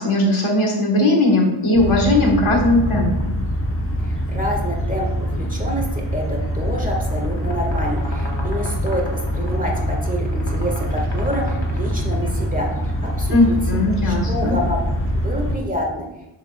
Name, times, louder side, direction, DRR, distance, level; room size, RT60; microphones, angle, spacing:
voice 1, 0.0-3.3 13.3-14.6, left 2 dB, 75° left, 0 dB, 1.6 m, -18 dB
sound 1, 1.7-15.6, equal, 25° left, 1.0 m, -24 dB
voice 2, 4.0-13.6 14.0-14.8 15.1-16.0, equal, 15° right, -1 dB, 1.7 m, -28 dB
sound 2, 6.7-12.5, left 1 dB, 60° left, 1.5 m, -37 dB
7.3 x 6.8 x 2.3 m, 0.92 s
wide cardioid pair, 50°, 50 cm